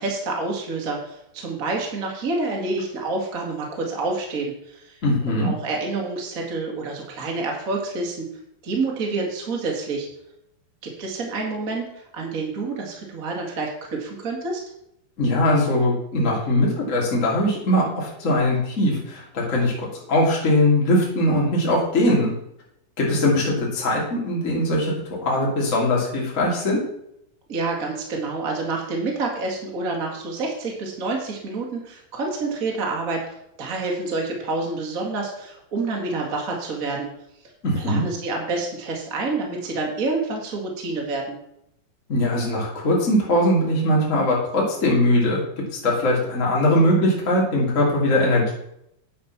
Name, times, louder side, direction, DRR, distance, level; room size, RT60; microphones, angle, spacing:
voice 1, 0.0-5.0 5.3-8.3 8.6-10.1 10.8-14.6 27.5-33.2 33.6-37.1 37.7-41.4, right 3 dB, 30° right, 0 dB, 1.6 m, -28 dB
voice 2, 5.0-5.5 15.2-22.3 23.0-24.9 25.2-26.8 37.6-38.0 42.1-45.4 45.8-48.5, left 1 dB, 25° left, -4 dB, 2.5 m, -21 dB
9.6 x 6.5 x 6.0 m, 0.77 s
omnidirectional pair, 4.4 m